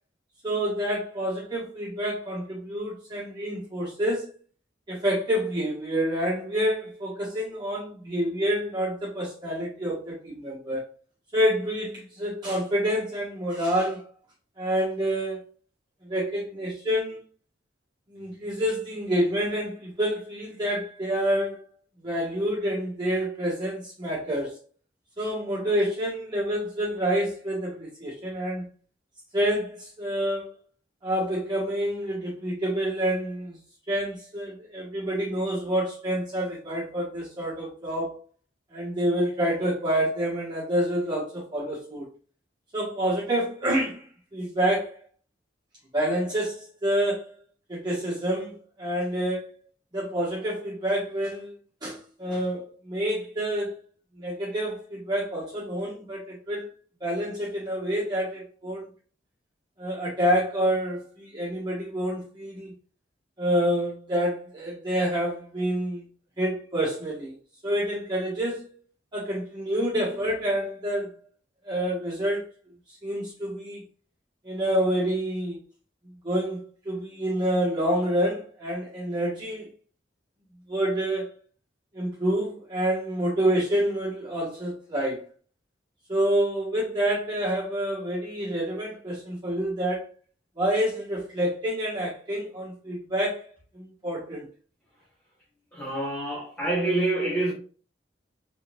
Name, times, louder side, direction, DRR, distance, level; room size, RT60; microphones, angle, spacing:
voice 1, 0.4-4.3 4.9-10.8 11.3-14.1 14.6-15.4 16.0-17.2 18.1-21.6 22.0-24.6 25.2-28.6 29.3-30.5 31.0-33.6 33.9-38.2 38.7-42.1 42.7-44.0 44.3-45.0 45.9-47.3 47.7-49.5 49.9-51.5 51.8-53.8 54.2-56.7 57.0-58.9 59.8-62.7 63.4-66.0 66.4-67.3 67.6-68.7 69.1-71.2 71.6-72.4 73.0-73.8 74.4-75.6 76.2-79.7 80.7-81.3 81.9-85.2 86.1-90.1 90.6-93.5 93.7-94.5, equal, 25° right, 1.8 m, -28 dB
voice 2, 95.7-97.5, right 2 dB, 10° left, 1.6 m, -26 dB
4.3 x 4.2 x 2.6 m
head